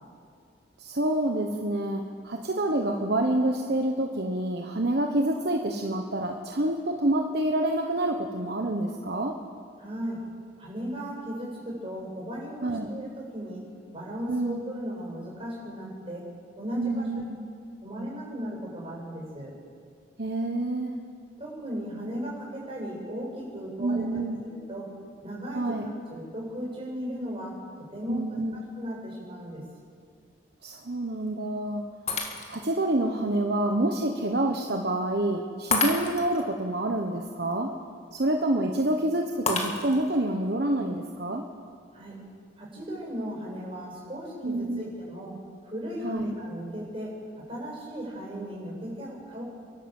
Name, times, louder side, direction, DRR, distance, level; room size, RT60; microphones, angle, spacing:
voice 1, 0.8-9.4 12.6-12.9 14.3-14.6 16.8-17.4 20.2-20.9 23.8-24.4 25.5-25.9 28.1-28.6 30.6-31.8 32.5-37.7 38.1-41.4 44.4-44.9 46.0-46.3, right 1 dB, 55° right, 3 dB, 1.2 m, -27 dB
voice 2, 9.8-10.2 10.6-13.6 13.9-16.3 16.6-17.1 17.8-19.5 21.4-24.0 24.5-24.9 25.2-27.6 27.9-28.2 28.5-29.6 41.9-42.2 42.6-45.4 45.6-49.4, equal, 30° right, -3 dB, 7.5 m, -36 dB
Shatter, 32.1-32.8 33.3-33.4 35.7-36.4 39.5-40.2, left 3 dB, 35° left, 2.0 m, -29 dB
29.0 x 12.0 x 7.8 m, 2.2 s
head